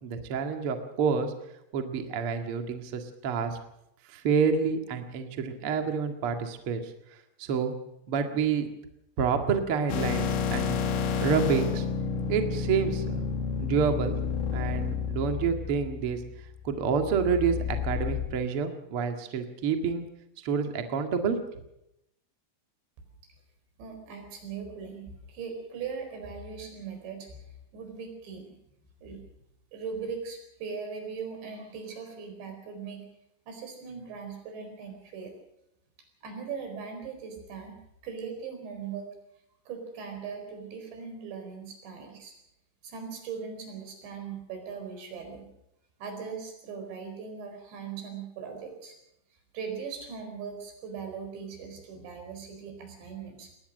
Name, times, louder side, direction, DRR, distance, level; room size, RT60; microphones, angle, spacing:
voice 1, 0.0-1.3 1.7-3.6 4.1-6.9 7.4-7.7 8.1-8.7 9.2-10.8 11.2-11.8 12.3-13.2 13.6-14.2 14.5-16.2 16.6-20.1 20.4-21.4, right 6 dB, 80° right, 5 dB, 1.2 m, -28 dB
sound 1, 9.9-18.3, left 6 dB, 75° left, 4.4 m, -30 dB
voice 2, 23.8-28.6 29.0-29.2 29.7-33.1 33.5-35.3 36.2-37.8 38.0-39.1 39.7-42.3 42.8-45.5 46.0-49.0 49.5-53.5, right 6 dB, 60° right, 5 dB, 6.7 m, -39 dB
21.5 x 19.0 x 6.5 m, 0.83 s
omnidirectional pair, 5.8 m